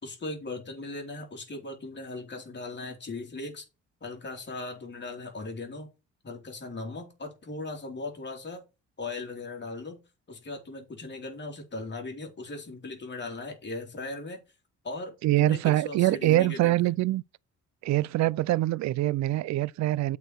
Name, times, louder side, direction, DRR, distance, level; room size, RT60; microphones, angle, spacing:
voice 1, 0.0-3.6 4.0-5.9 6.2-8.6 9.0-10.0 10.3-14.4 14.8-16.8, left 2 dB, 35° left, 3.4 m, -38 dB
voice 2, 15.2-17.2 17.8-20.2, right 16 dB, 65° right, 0.4 m, -24 dB
8.0 x 4.8 x 5.9 m
cardioid pair, 90°, 30 cm